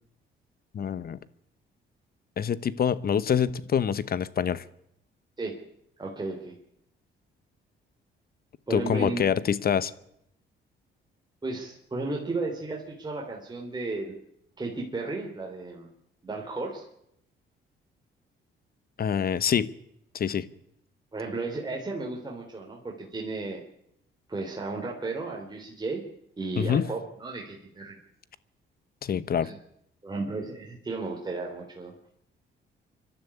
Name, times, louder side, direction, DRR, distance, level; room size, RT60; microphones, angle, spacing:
voice 1, 0.7-1.2 2.4-4.6 8.7-9.9 19.0-19.7 20.1-20.5 26.6-26.9 29.0-29.5, left 8 dB, 50° left, 17 dB, 1.0 m, -26 dB
voice 2, 6.0-6.6 8.7-9.3 11.4-14.2 14.6-15.9 16.2-16.8 21.1-23.6 24.3-26.0 26.4-28.0 29.4-29.6 30.0-31.9, right 3 dB, 20° right, -1 dB, 3.7 m, -34 dB
25.5 x 12.0 x 8.6 m, 0.76 s
cardioid pair, 90°, 20 cm